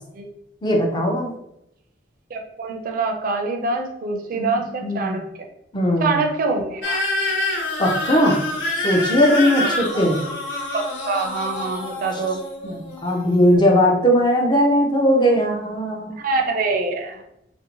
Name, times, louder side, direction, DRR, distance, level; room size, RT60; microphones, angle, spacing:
voice 1, 0.6-1.3 4.3-4.5 4.8-5.2 5.7-6.2 7.8-8.4 8.7-10.2 12.6-16.1, equal, 25° left, 0 dB, 0.5 m, -19 dB
voice 2, 2.3-5.2 6.0-7.0 10.0-10.1 10.7-12.4 16.2-17.2, right 3 dB, 50° right, 4 dB, 0.4 m, -25 dB
sound 1, 6.8-13.5, left 2 dB, 75° left, 0.6 m, -27 dB
2.6 x 2.0 x 2.9 m, 0.80 s
head